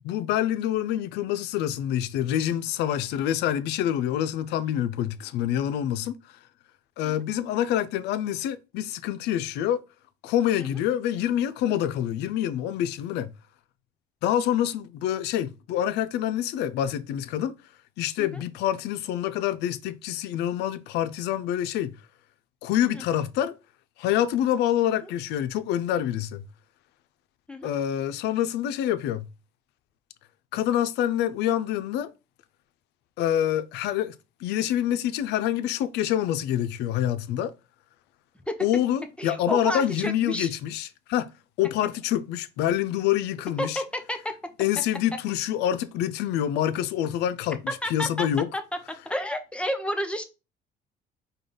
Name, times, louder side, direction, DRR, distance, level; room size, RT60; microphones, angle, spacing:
voice 1, 0.0-6.2 7.0-9.8 10.2-13.3 14.2-17.5 18.0-22.0 22.6-23.5 24.0-26.4 27.6-29.3 30.5-32.1 33.2-34.2 34.4-37.5 38.6-41.3 41.6-43.8 44.6-47.6 47.8-48.5, left 11 dB, 85° left, 0.4 m, -26 dB
voice 2, 39.2-40.5 43.6-44.2 47.8-48.3 49.1-50.2, equal, 5° left, 0.7 m, -31 dB
5.0 x 2.3 x 3.7 m
cardioid pair, 110°, 17 cm